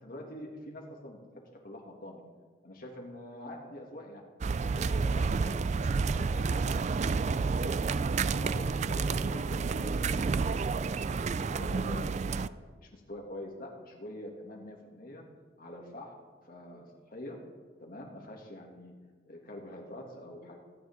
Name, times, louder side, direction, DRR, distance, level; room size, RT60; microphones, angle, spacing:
voice 1, 0.0-2.2 2.6-4.2 4.8-7.5 8.3-10.7 11.1-12.5 12.8-15.2 15.6-16.1 16.4-17.4 17.8-18.9 19.3-20.6, left 1 dB, 50° left, 0 dB, 2.5 m, -45 dB
sound 1, 4.4-12.5, right 4 dB, 40° right, 0.3 m, -30 dB
25.5 x 9.8 x 3.8 m, 1.5 s
head